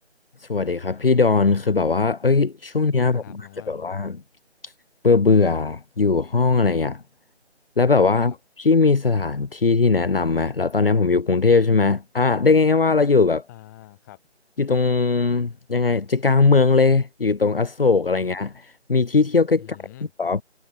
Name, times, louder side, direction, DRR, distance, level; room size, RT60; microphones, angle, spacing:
voice 1, 0.4-4.2 4.6-4.7 5.0-7.0 7.8-13.4 14.6-19.8 20.2-20.4, left 4 dB, 55° left, 1.3 m, -19 dB
voice 2, 3.0-4.1 8.2-8.4 13.5-14.2 19.6-20.1, left 16 dB, 15° left, 5.6 m, -45 dB
figure-of-eight pair, 155°, 34 cm